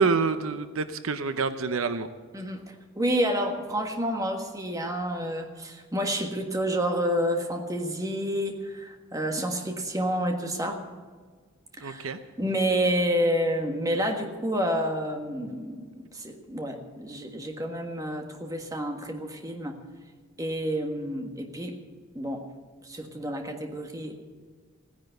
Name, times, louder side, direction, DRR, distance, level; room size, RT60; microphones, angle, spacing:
voice 1, 0.0-2.1 11.8-12.2, right 4 dB, 75° right, 11 dB, 0.8 m, -26 dB
voice 2, 2.3-10.8 11.8-12.1 12.4-19.8 20.4-21.8 22.1-22.5 22.8-24.2, equal, 15° right, 4 dB, 1.6 m, -29 dB
16.5 x 10.5 x 7.9 m, 1.5 s
head